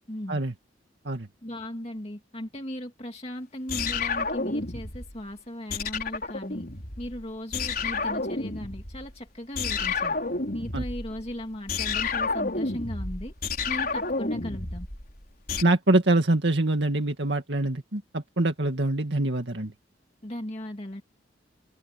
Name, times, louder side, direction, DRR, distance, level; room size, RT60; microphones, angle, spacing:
voice 1, 0.1-0.4 1.4-6.6 7.0-10.2 10.5-13.3 13.7-14.9 20.2-21.0, left 1 dB, 30° left, 2.2 m, -37 dB
sound 1, 3.7-5.2 5.7-7.2 7.5-9.1 9.6-15.6, left 4 dB, 50° left, 5.4 m, -30 dB
voice 2, 15.6-19.7, right 2 dB, 65° right, 2.2 m, -24 dB
head